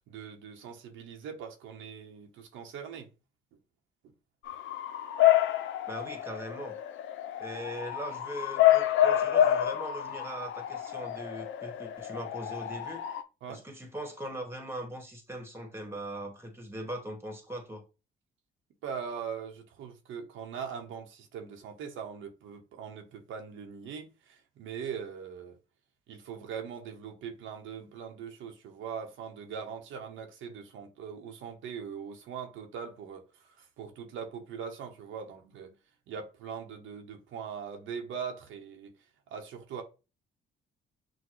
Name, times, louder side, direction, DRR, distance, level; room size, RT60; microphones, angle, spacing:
voice 1, 0.1-3.1 13.4-13.6 18.8-25.6 26.1-33.2 33.6-35.7 36.1-38.9 39.3-39.8, right 7 dB, 80° right, 0.9 m, -41 dB
Bark / Motor vehicle (road) / Siren, 4.5-13.2, left 12 dB, 75° left, 0.5 m, -28 dB
voice 2, 5.9-6.8 7.4-13.0 13.5-17.8, right 1 dB, 10° right, 1.4 m, -40 dB
6.2 x 2.2 x 3.1 m
cardioid pair, 90°, 20 cm